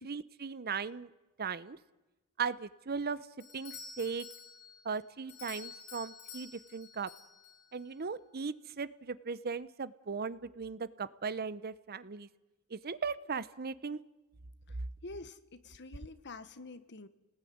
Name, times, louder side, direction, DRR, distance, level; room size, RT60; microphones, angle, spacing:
voice 1, 0.0-1.1 1.4-1.8 2.4-3.2 3.5-4.3 4.8-7.1 7.7-12.3 12.7-14.0, right 5 dB, 45° right, 16 dB, 0.8 m, -38 dB
Doorbell, 3.4-7.9, left 6 dB, 85° left, 5.1 m, -50 dB
voice 2, 15.0-17.1, left 3 dB, 55° left, 12 dB, 1.4 m, -47 dB
29.5 x 19.5 x 9.4 m, 1.1 s
head